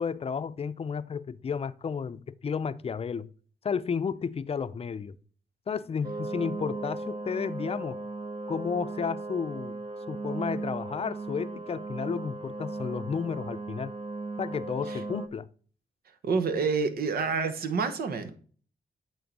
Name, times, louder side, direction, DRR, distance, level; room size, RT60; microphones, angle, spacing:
voice 1, 0.0-3.3 3.6-5.2 5.7-8.0 8.5-9.8 10.1-13.9 14.4-15.5, left 6 dB, 40° left, 0.5 m, -32 dB
sound 1, 6.0-15.3, right 3 dB, 35° right, 0.8 m, -37 dB
voice 2, 16.2-18.3, right 5 dB, 85° right, 1.1 m, -28 dB
8.7 x 3.7 x 5.3 m
cardioid pair, 85°, 16 cm